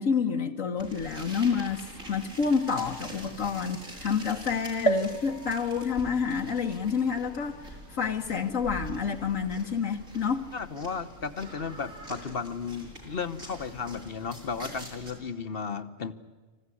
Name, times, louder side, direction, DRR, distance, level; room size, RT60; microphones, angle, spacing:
voice 1, 0.0-10.5, left 6 dB, 70° left, 1.6 m, -29 dB
sound 1, 0.8-15.1, right 1 dB, 70° right, 7.5 m, -45 dB
sound 2, 4.9-8.5 9.1-9.2 9.4-9.5, right 3 dB, 20° left, 1.3 m, -34 dB
voice 2, 10.5-16.1, left 5 dB, 45° left, 1.3 m, -34 dB
27.0 x 15.5 x 9.8 m
omnidirectional pair, 1.4 m